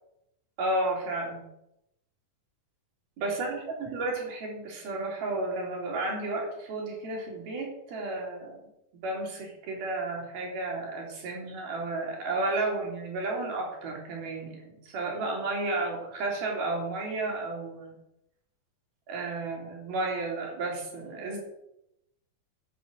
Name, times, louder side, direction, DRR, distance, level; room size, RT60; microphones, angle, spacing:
voice 1, 0.6-1.4 3.2-8.6 9.0-17.9 19.1-21.4, right 2 dB, 80° right, -1 dB, 5.2 m, -32 dB
11.5 x 8.7 x 8.0 m, 0.84 s
omnidirectional pair, 4.2 m